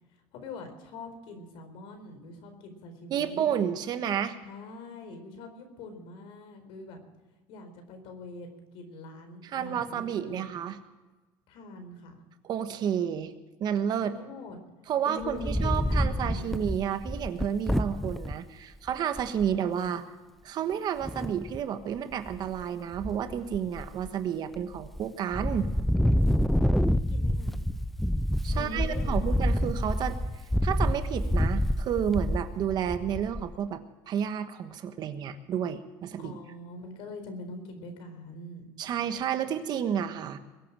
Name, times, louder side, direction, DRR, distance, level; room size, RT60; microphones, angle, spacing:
voice 1, 0.3-3.5 4.4-7.0 7.5-10.5 11.5-12.2 14.0-14.6 15.0-16.5 19.5-20.0 26.6-27.7 28.5-29.4 36.2-38.7, left 2 dB, 65° left, 7 dB, 4.3 m, -43 dB
voice 2, 3.1-4.4 9.5-10.8 12.4-13.3 13.6-14.1 14.9-20.0 20.4-25.7 28.4-30.2 30.6-36.3 38.8-40.4, right 8 dB, 45° right, 9 dB, 1.3 m, -31 dB
Wind, 15.2-18.3 18.9-19.0 19.2-19.5 21.0-21.6 22.1-22.6 22.9-24.1 24.6-25.0 25.3-33.5, equal, ahead, 0.5 m, -27 dB
22.0 x 8.7 x 7.4 m, 1.2 s
cardioid pair, 135°, 10 cm